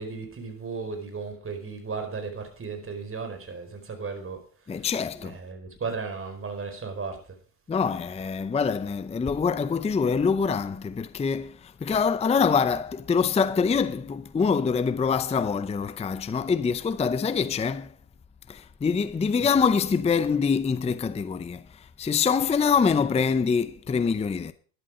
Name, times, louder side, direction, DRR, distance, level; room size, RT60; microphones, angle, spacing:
voice 1, 0.0-4.4 5.2-7.2, right 4 dB, 30° right, 4.9 m, -35 dB
voice 2, 4.7-5.4 7.7-17.9 18.5-21.6 22.0-24.5, left 5 dB, 15° left, 0.6 m, -25 dB
12.5 x 11.0 x 5.0 m
supercardioid pair, 90°, 44 cm